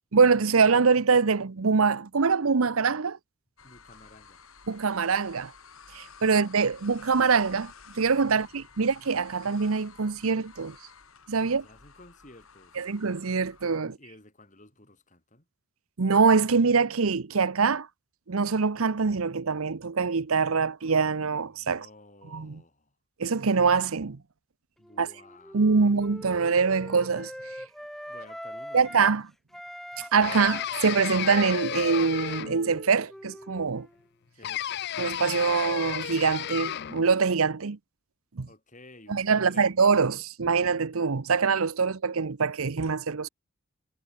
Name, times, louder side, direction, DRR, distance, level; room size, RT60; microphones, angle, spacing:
voice 1, 0.1-3.2 4.7-5.5 5.9-7.7 8.0-10.7 11.3-11.6 12.8-13.9 16.0-17.9 18.3-21.8 22.3-22.6 23.2-24.2 25.0-25.1 25.5-27.3 28.7-29.2 30.0-33.9 35.0-37.8 38.4-38.5 39.1-43.3, right 5 dB, 80° right, 0.8 m, -24 dB
sound 1, 3.6-13.8, left 5 dB, 80° left, 4.9 m, -52 dB
voice 2, 3.6-4.5 6.3-6.5 8.3-8.6 11.4-12.9 13.8-15.5 21.4-23.0 24.8-25.7 27.8-29.1 34.3-34.7 38.4-39.8, left 2 dB, 35° left, 5.2 m, -54 dB
Wind instrument woodwind instrument, 24.8-29.2 29.5-34.0, equal, ahead, 5.2 m, -43 dB
sound 2, 30.2-32.8 34.4-37.1, left 10 dB, 50° left, 0.4 m, -33 dB
head